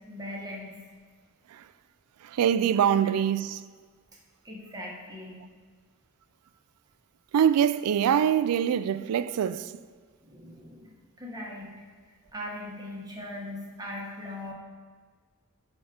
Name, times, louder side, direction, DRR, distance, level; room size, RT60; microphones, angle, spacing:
voice 1, 0.1-0.8 4.4-5.4 10.2-11.7 12.3-14.5, left 1 dB, 20° right, 1.1 m, -39 dB
voice 2, 2.2-3.6 7.3-9.7, right 9 dB, 85° right, 0.3 m, -24 dB
10.5 x 3.6 x 5.0 m
head